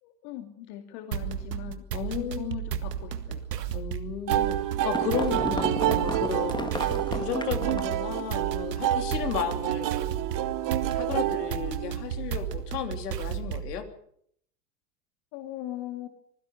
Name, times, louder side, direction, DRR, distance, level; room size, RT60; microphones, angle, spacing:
voice 1, 0.0-1.9 2.2-3.5 15.3-16.1, left 12 dB, 55° left, 5 dB, 2.4 m, -39 dB
sound 1, 1.1-13.8, right 9 dB, 80° right, 1.8 m, -34 dB
voice 2, 1.9-2.5 3.7-4.6 4.8-10.4 10.8-13.8, left 8 dB, 75° left, 6 dB, 3.4 m, -34 dB
sound 2, 4.3-8.0, left 2 dB, 10° left, 1.7 m, -34 dB
sound 3, 4.3-12.2, right 14 dB, 40° right, 1.3 m, -29 dB
25.5 x 16.0 x 6.7 m, 0.67 s
hypercardioid pair, 90°, 47 cm